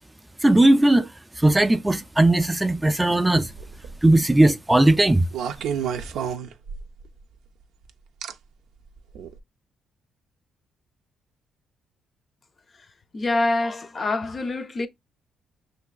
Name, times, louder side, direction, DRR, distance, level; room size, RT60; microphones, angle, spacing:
voice 1, 0.4-1.1 1.4-3.5 4.0-5.3, right 1 dB, 10° right, 0.4 m, -18 dB
sound 1, 3.5-4.0 5.3-7.1 8.2-8.3 9.1-9.3, right 8 dB, 85° right, 0.5 m, -30 dB
voice 2, 13.1-14.9, left 2 dB, 35° left, 0.6 m, -25 dB
5.8 x 3.3 x 2.3 m
cardioid pair, 90°, 0 cm